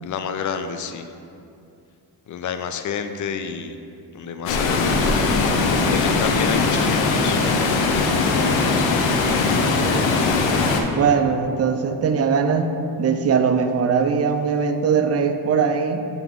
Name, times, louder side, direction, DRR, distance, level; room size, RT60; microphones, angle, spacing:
voice 1, 0.0-1.1 2.3-3.8 4.1-5.5 5.8-7.4 8.3-8.9, left 7 dB, 45° left, 8 dB, 0.4 m, -30 dB
Water, 4.5-10.8, left 3 dB, 85° left, 0.7 m, -20 dB
voice 2, 9.5-10.2 11.0-16.1, right 6 dB, 35° right, 7 dB, 0.4 m, -21 dB
7.8 x 3.6 x 3.6 m, 2.5 s
cardioid pair, 100°, 44 cm